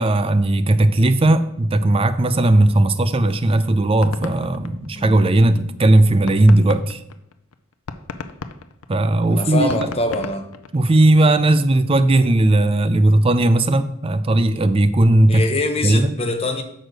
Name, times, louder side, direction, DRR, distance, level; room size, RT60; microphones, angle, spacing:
voice 1, 0.0-7.0 8.9-9.9 10.7-15.4 15.8-16.1, right 1 dB, 25° right, 11 dB, 0.4 m, -16 dB
sound 1, 3.4-5.5 5.9-6.0 6.3-11.2, left 4 dB, 85° left, 0.5 m, -34 dB
voice 2, 4.9-5.2 9.3-10.5 15.3-16.6, left 2 dB, 30° left, 6 dB, 0.9 m, -24 dB
6.4 x 6.3 x 5.1 m, 0.76 s
head